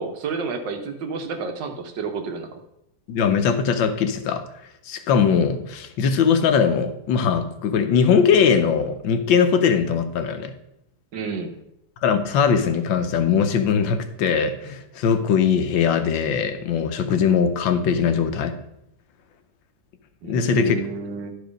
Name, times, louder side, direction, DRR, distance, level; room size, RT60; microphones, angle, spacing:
voice 1, 0.0-2.6 11.1-11.5 20.2-21.3, right 5 dB, 75° right, 6 dB, 1.7 m, -30 dB
voice 2, 3.1-4.4 4.9-10.5 12.0-18.5 20.2-20.7, left 6 dB, 90° left, 9 dB, 1.6 m, -20 dB
11.0 x 4.9 x 5.1 m, 0.82 s
omnidirectional pair, 2.0 m